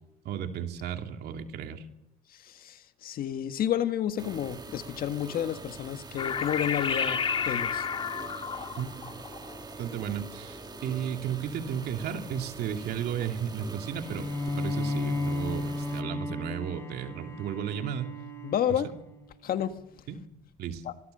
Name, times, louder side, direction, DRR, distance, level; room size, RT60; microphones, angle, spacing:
voice 1, 0.2-1.8 8.8-8.9 9.8-14.3 14.6-18.2 18.7-18.8 20.1-20.2 20.6-20.8, right 8 dB, 70° right, 5 dB, 2.7 m, -34 dB
voice 2, 2.5-7.8 18.4-18.9 19.4-19.7 20.9-21.0, left 10 dB, 60° left, 9 dB, 1.5 m, -30 dB
sound 1, 4.2-16.0, right 4 dB, 25° right, 1.5 m, -44 dB
sound 2, 6.2-11.0, left 6 dB, 30° left, 1.6 m, -32 dB
Bowed string instrument, 14.0-19.4, left 2 dB, 15° left, 5.1 m, -34 dB
25.0 x 20.0 x 6.7 m, 0.88 s
cardioid pair, 110°, 17 cm